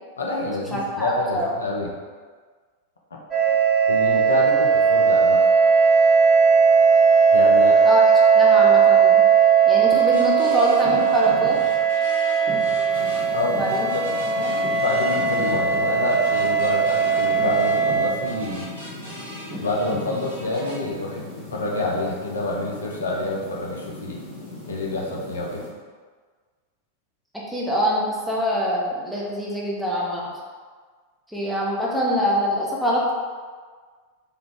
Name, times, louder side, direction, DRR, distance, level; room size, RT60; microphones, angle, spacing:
voice 1, 0.2-1.9 3.9-5.4 7.3-7.8 13.3-13.6 13.9-14.0 14.8-18.7 19.6-21.2 21.5-24.2 24.7-25.6, left 2 dB, 70° left, -2 dB, 0.5 m, -27 dB
voice 2, 0.7-1.5 7.8-8.0 8.3-9.2 9.7-11.6 13.6-13.9 14.3-14.5 27.5-30.2 31.3-33.1, equal, 5° right, -5 dB, 0.7 m, -24 dB
sound 1, 3.3-18.1, right 6 dB, 20° right, 1.0 m, -18 dB
sound 2, 10.0-20.8, right 1 dB, 75° right, 1.0 m, -37 dB
sound 3, 12.9-25.7, left 2 dB, 50° left, 1.1 m, -39 dB
3.4 x 2.3 x 3.5 m, 1.5 s
figure-of-eight pair, 90°, 0 cm